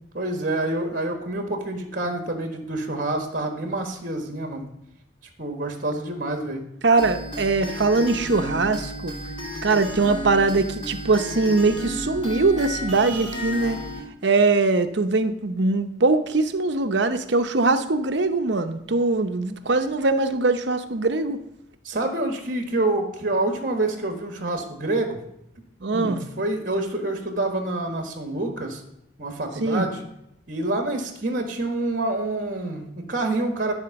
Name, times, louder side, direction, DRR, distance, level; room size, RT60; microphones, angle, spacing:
voice 1, 0.1-4.7 5.4-6.6 21.8-25.2 25.9-28.8 29.2-30.0 30.5-33.7, right 2 dB, 45° right, 4 dB, 1.4 m, -27 dB
voice 2, 6.8-9.1 9.6-13.8 14.2-21.4 25.8-26.3 29.6-29.9, right 3 dB, 65° right, 8 dB, 0.7 m, -22 dB
sound 1, 7.0-14.0, equal, 30° left, 3.3 m, -33 dB
13.0 x 4.4 x 7.0 m, 0.81 s
head